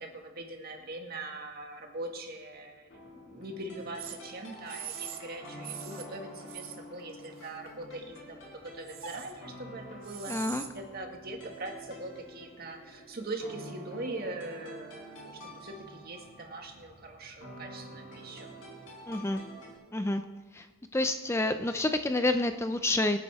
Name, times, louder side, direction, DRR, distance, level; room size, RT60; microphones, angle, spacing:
voice 1, 0.0-10.5 10.9-18.5, right 2 dB, 45° right, 2 dB, 1.9 m, -42 dB
sound 1, 2.9-19.7, right 1 dB, 65° left, 4.8 m, -48 dB
sound 2, 4.0-4.2 4.7-5.2 5.6-6.1 6.5-6.7 7.2-7.8 8.9-9.3 10.0-10.7, right 8 dB, 80° right, 1.3 m, -41 dB
voice 2, 10.3-10.6 19.1-19.4 19.9-20.2 20.5-20.7 20.9-23.2, left 2 dB, 10° left, 8 dB, 0.4 m, -28 dB
25.0 x 9.3 x 3.5 m, 1.3 s
head